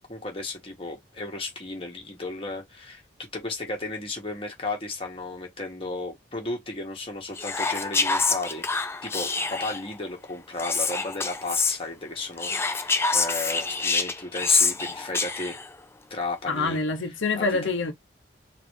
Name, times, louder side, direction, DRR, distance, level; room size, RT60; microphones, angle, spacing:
voice 1, 0.1-3.0 3.3-8.6 9.0-15.6 16.1-16.8 17.4-17.6, left 2 dB, 30° left, 1.5 m, -34 dB
Whispering, 7.4-9.9 10.6-11.8 12.4-15.7, left 4 dB, 15° left, 0.4 m, -26 dB
voice 2, 16.5-17.9, left 3 dB, 80° left, 0.8 m, -26 dB
4.0 x 2.7 x 3.2 m
head